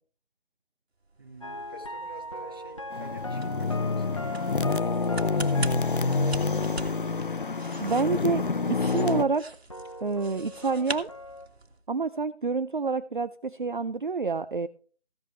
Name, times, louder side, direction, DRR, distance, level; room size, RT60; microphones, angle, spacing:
sound 1, 1.0-11.8, right 3 dB, 65° right, 1.7 m, -43 dB
voice 1, 1.2-4.8 5.1-6.6, right 2 dB, 20° right, 3 dB, 1.1 m, -49 dB
sound 2, 1.4-9.4 9.7-11.5, left 1 dB, 30° left, 0.9 m, -40 dB
sound 3, 2.9-9.2, left 4 dB, 50° left, 0.6 m, -27 dB
voice 2, 7.8-9.4 10.0-11.1 11.9-14.7, right 4 dB, 50° right, 12 dB, 0.5 m, -28 dB
15.0 x 11.0 x 3.2 m, 0.40 s
figure-of-eight pair, 170°, 33 cm